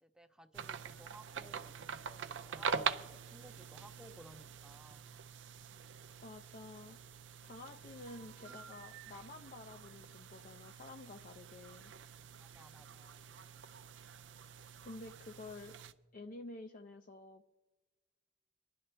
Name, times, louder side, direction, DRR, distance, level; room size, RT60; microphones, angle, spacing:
voice 1, 0.0-1.7 2.0-5.1 8.5-8.6 12.3-13.3, right 1 dB, 5° right, 7 dB, 0.6 m, -59 dB
sound 1, 0.5-15.9, right 6 dB, 80° right, 0.5 m, -45 dB
voice 2, 6.2-7.0 7.4-11.9 14.8-15.8 16.1-17.5, left 2 dB, 45° left, 5 dB, 0.5 m, -50 dB
26.0 x 11.0 x 3.3 m, 1.2 s
head